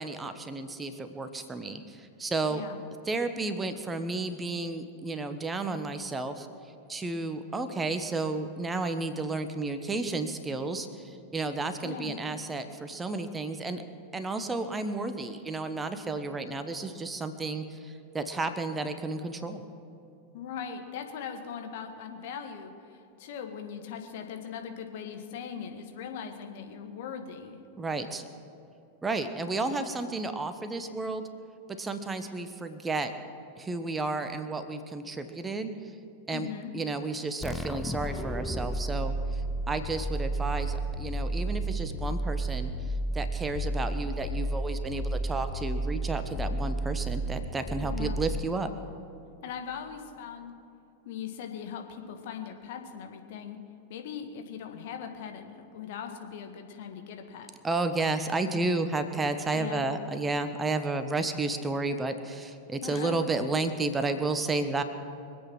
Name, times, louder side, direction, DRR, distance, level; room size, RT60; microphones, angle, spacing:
voice 1, 0.0-2.6 3.0-6.5 6.9-13.8 14.1-19.6 27.8-28.2 29.0-31.2 31.8-33.1 33.6-35.7 36.3-36.5 36.7-39.4 39.7-48.7 57.6-64.8, right 3 dB, 15° right, 9 dB, 1.2 m, -32 dB
voice 2, 2.5-2.8 11.8-12.2 20.3-27.6 29.6-29.7 36.3-36.8 47.8-48.2 49.4-50.5 51.1-53.6 53.9-57.5 59.5-59.8 62.8-63.2, left 7 dB, 50° left, 5 dB, 1.8 m, -40 dB
sound 1, 37.4-48.9, right 1 dB, 10° left, 0.7 m, -32 dB
24.5 x 8.5 x 6.1 m, 2.7 s
figure-of-eight pair, 90°, 0 cm